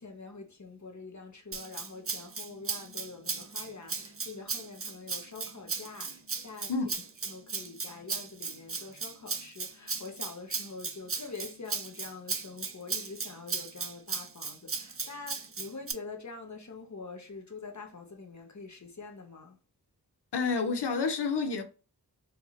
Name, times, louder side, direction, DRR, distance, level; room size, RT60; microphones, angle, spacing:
voice 1, 0.0-6.7 7.2-19.6, left 4 dB, 45° left, 0.9 m, -45 dB
Rattle (instrument), 1.5-15.9, right 4 dB, 35° right, 0.6 m, -36 dB
voice 2, 20.3-21.6, left 4 dB, 75° left, 0.8 m, -29 dB
4.5 x 2.5 x 2.9 m
wide cardioid pair, 50°, 41 cm